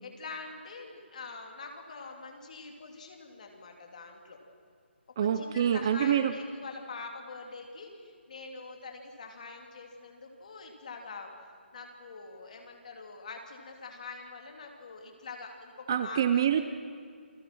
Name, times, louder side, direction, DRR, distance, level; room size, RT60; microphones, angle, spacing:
voice 1, 0.0-4.4 5.2-11.3 11.7-16.4, left 4 dB, 40° left, 2 dB, 3.2 m, -44 dB
voice 2, 5.2-6.3 15.9-16.7, right 9 dB, 20° right, 10 dB, 0.6 m, -26 dB
28.5 x 18.0 x 6.2 m, 2.1 s
hypercardioid pair, 175°, 6 cm